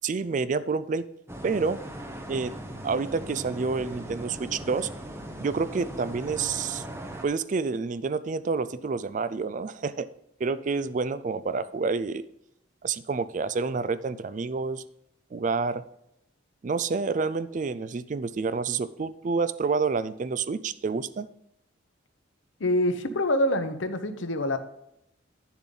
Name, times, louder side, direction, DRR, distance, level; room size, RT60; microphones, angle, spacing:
voice 1, 0.0-1.1 1.4-1.8 2.3-2.5 2.8-4.9 5.4-6.8 7.2-10.1 10.4-12.3 12.8-14.8 15.3-15.8 16.6-21.3, right 4 dB, 40° right, 15 dB, 0.3 m, -28 dB
sound 1, 1.3-7.2, right 1 dB, 10° right, 0.8 m, -39 dB
voice 2, 22.6-24.6, left 1 dB, 70° left, 10 dB, 0.8 m, -25 dB
9.9 x 7.1 x 3.9 m, 0.79 s
head